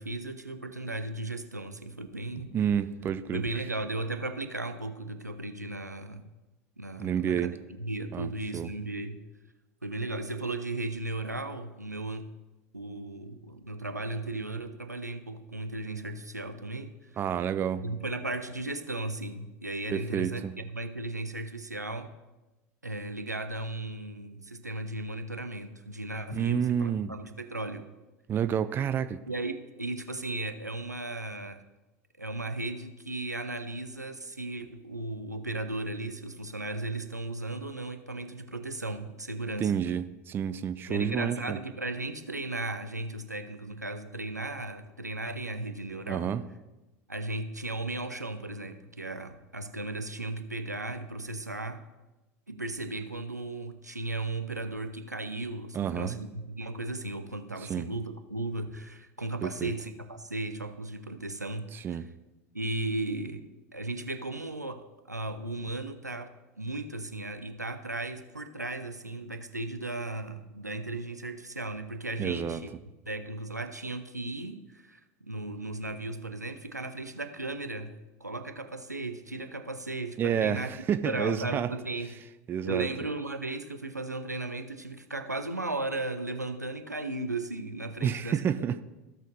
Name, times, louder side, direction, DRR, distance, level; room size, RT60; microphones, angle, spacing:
voice 1, 0.0-2.5 3.3-6.3 6.8-9.2 9.8-12.3 12.7-17.1 17.8-22.1 22.8-27.9 29.3-31.6 32.2-39.7 40.9-46.4 47.1-51.8 52.5-62.0 62.5-72.7 73.1-77.9 78.2-80.7 81.0-82.1 82.6-88.4, right 2 dB, 90° right, 8 dB, 0.6 m, -36 dB
voice 2, 2.5-3.4 7.0-7.5 8.1-8.7 17.2-17.8 19.9-20.5 26.3-27.1 28.3-29.2 39.6-41.6 46.1-46.4 55.7-56.2 57.6-57.9 59.4-59.7 61.7-62.1 72.2-72.6 80.2-81.7 82.5-82.9 88.0-88.8, right 8 dB, 25° right, 12 dB, 0.4 m, -29 dB
16.0 x 6.4 x 2.7 m, 1.1 s
figure-of-eight pair, 80°, 9 cm